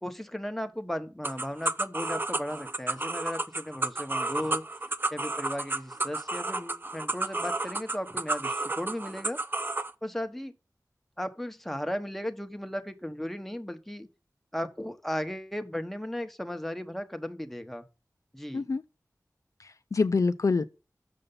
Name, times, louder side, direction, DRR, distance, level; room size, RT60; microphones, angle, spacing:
voice 1, 0.0-4.6 5.1-9.4 10.0-10.5 11.2-14.1 14.5-17.8 18.3-18.7, equal, 5° left, 1.0 m, -36 dB
sound 1, 1.2-9.9, right 2 dB, 35° right, 0.5 m, -31 dB
voice 2, 19.6-20.6, left 4 dB, 60° left, 0.4 m, -26 dB
6.8 x 5.4 x 5.4 m
wide cardioid pair, 45°, 6 cm